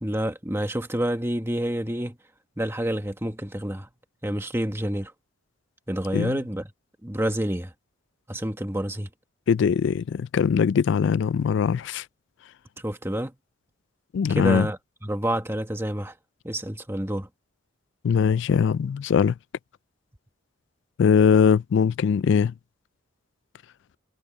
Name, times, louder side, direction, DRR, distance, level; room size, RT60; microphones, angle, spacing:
voice 1, 0.0-2.2 2.6-3.9 4.2-5.1 5.9-6.7 7.0-7.7 8.3-9.1 12.8-13.3 14.3-16.1 16.4-17.3, right 1 dB, 10° right, 1.4 m, -28 dB
voice 2, 9.5-12.0 14.1-14.7 18.0-19.3 21.0-22.5, left 6 dB, 60° left, 0.3 m, -21 dB
head